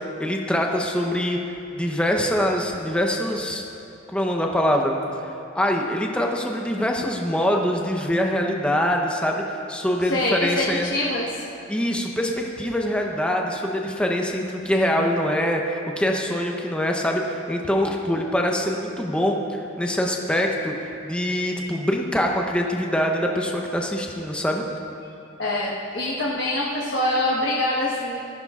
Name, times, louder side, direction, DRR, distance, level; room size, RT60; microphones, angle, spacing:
voice 1, 0.0-3.6 4.1-10.9 11.7-24.6, equal, 5° left, 1 dB, 0.8 m, -24 dB
voice 2, 10.0-11.4 25.4-28.2, left 1 dB, 55° left, -5 dB, 1.3 m, -24 dB
18.5 x 15.0 x 2.5 m, 2.7 s
head